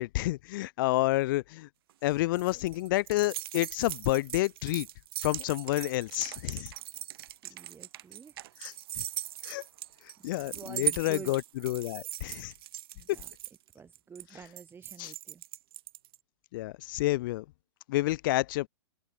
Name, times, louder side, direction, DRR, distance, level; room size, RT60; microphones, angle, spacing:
voice 1, 0.0-1.7 2.0-4.9 5.2-6.7 8.6-8.7 9.4-9.6 10.2-12.5 15.0-15.1 16.5-17.4 17.9-18.7, left 18 dB, 45° left, 0.9 m, -29 dB
sound 1, 1.9-16.2, right 14 dB, 50° right, 2.2 m, -39 dB
voice 2, 7.5-8.4 10.4-11.3 12.9-13.3 13.7-15.4, right 6 dB, 15° right, 7.4 m, -48 dB
open air
figure-of-eight pair, 115°, 15 cm